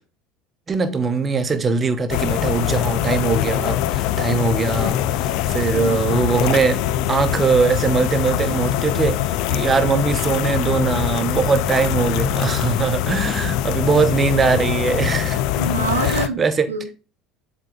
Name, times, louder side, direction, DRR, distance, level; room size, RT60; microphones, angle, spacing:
voice 1, 0.7-6.8 7.1-9.2 9.5-16.7, right 4 dB, 30° right, 0.9 m, -21 dB
sound 1, 2.1-16.3, left 12 dB, 60° left, 0.4 m, -23 dB
voice 2, 15.6-16.4 16.7-16.9, right 3 dB, 90° right, 0.7 m, -25 dB
7.5 x 4.0 x 3.8 m
hypercardioid pair, 65°, 0 cm